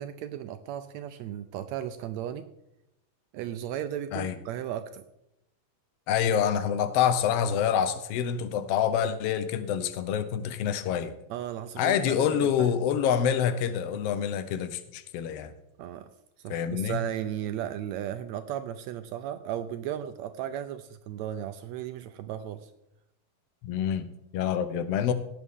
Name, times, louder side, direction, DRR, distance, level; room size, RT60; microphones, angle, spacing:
voice 1, 0.0-2.5 3.3-5.0 11.3-12.7 15.8-16.1 16.4-22.7, right 10 dB, 80° right, 9 dB, 1.6 m, -35 dB
voice 2, 6.1-11.1 11.8-15.5 16.5-17.0 23.6-25.1, left 8 dB, 85° left, 11 dB, 1.3 m, -27 dB
17.5 x 8.2 x 3.6 m, 0.83 s
omnidirectional pair, 3.6 m